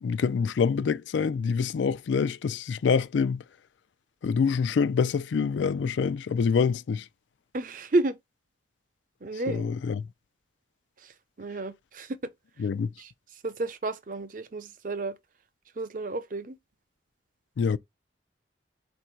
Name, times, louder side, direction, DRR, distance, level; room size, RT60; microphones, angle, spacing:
voice 1, 0.0-3.4 4.2-7.1 9.5-10.1 12.6-12.9 17.6-17.8, left 5 dB, 85° left, 0.4 m, -26 dB
voice 2, 7.5-8.2 9.2-9.7 11.0-12.2 13.0-13.1 13.4-15.2 15.8-16.6, right 2 dB, 45° right, 0.5 m, -31 dB
4.4 x 2.6 x 4.4 m
head